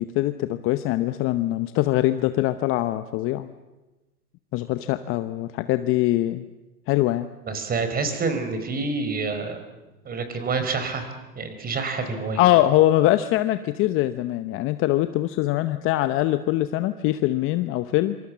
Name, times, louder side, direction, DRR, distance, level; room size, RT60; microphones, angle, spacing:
voice 1, 0.0-3.5 4.5-6.5 6.9-7.3 12.4-18.2, left 15 dB, 30° left, 11 dB, 0.8 m, -23 dB
voice 2, 7.5-9.6 10.0-11.0 11.3-12.4, right 4 dB, 20° right, 8 dB, 4.5 m, -27 dB
26.0 x 26.0 x 7.4 m, 1.1 s
hypercardioid pair, 120°, 46 cm